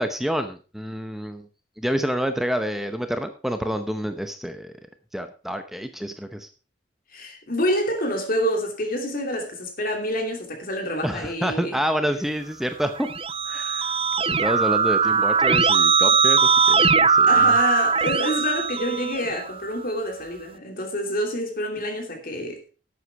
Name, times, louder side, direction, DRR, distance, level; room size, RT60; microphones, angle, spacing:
voice 1, 0.0-1.5 1.8-4.7 5.1-6.5 11.0-13.1 13.5-14.0 14.3-17.6, equal, ahead, 0.8 m, -28 dB
voice 2, 7.1-11.8 17.3-22.6, equal, 55° left, 2.8 m, -27 dB
Keyboard (musical), 12.9-19.5, right 5 dB, 30° right, 0.5 m, -20 dB
11.5 x 8.3 x 4.7 m
head